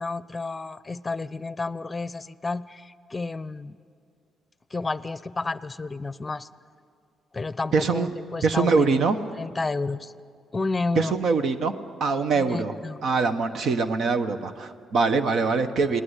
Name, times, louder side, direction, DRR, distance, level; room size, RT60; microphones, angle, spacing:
voice 1, 0.0-3.8 4.7-6.5 7.3-9.0 9.4-10.1 10.5-11.1 12.3-13.0, left 3 dB, 25° left, 16 dB, 0.7 m, -31 dB
voice 2, 7.7-8.1 8.4-9.2 11.0-11.7 12.0-12.7 13.0-16.0, right 4 dB, 65° right, 9 dB, 1.2 m, -23 dB
29.5 x 19.5 x 8.3 m, 2.3 s
cardioid pair, 90°, 0 cm